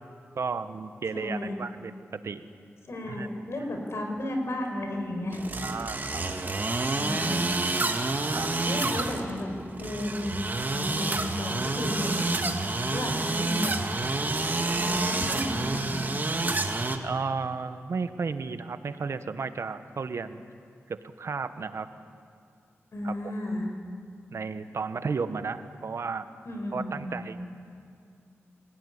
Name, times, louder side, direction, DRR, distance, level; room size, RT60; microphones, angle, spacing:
voice 1, 0.3-2.5 3.1-3.3 5.6-6.2 8.3-8.5 17.0-20.4 20.9-21.9 23.0-23.1 24.3-26.3 26.7-27.4, right 5 dB, 70° right, 10 dB, 1.1 m, -33 dB
voice 2, 1.1-1.6 2.8-5.4 6.9-7.5 8.6-9.5 9.8-13.7 14.7-16.1 22.9-23.7 26.5-27.2, left 1 dB, 65° left, 3 dB, 5.1 m, -33 dB
sound 1, 5.3-17.0, right 2 dB, 40° right, 2.0 m, -29 dB
25.0 x 17.5 x 10.0 m, 2.4 s
wide cardioid pair, 80°, 5 cm